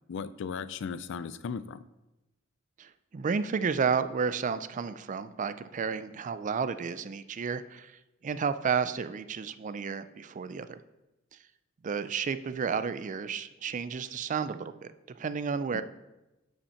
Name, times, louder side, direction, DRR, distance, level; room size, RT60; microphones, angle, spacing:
voice 1, 0.1-1.8 15.7-15.8, left 6 dB, 65° left, 15 dB, 0.4 m, -36 dB
voice 2, 2.8-10.8 11.8-15.8, right 6 dB, 40° right, 13 dB, 0.4 m, -32 dB
7.0 x 5.8 x 5.6 m, 1.0 s
head